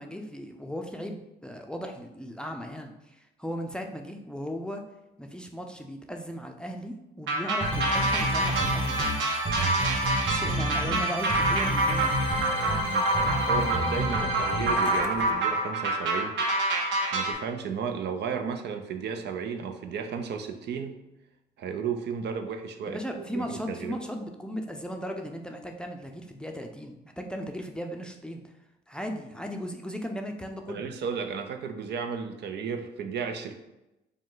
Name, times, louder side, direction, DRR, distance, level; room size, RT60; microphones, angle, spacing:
voice 1, 0.0-4.8 5.2-9.1 10.3-12.2 22.8-28.4 28.9-30.9, equal, 5° left, 3 dB, 0.5 m, -37 dB
sound 1, 7.3-17.3, right 2 dB, 80° right, 1.0 m, -27 dB
sound 2, 7.6-15.0, right 1 dB, 30° right, 1.3 m, -29 dB
voice 2, 12.7-13.1 13.5-16.4 16.8-20.9 21.6-24.0 30.7-33.5, right 6 dB, 65° right, 6 dB, 0.5 m, -34 dB
sound 3, 14.4-15.5, left 7 dB, 60° left, 0.5 m, -42 dB
5.0 x 2.2 x 3.8 m, 0.94 s
cardioid pair, 75°, 19 cm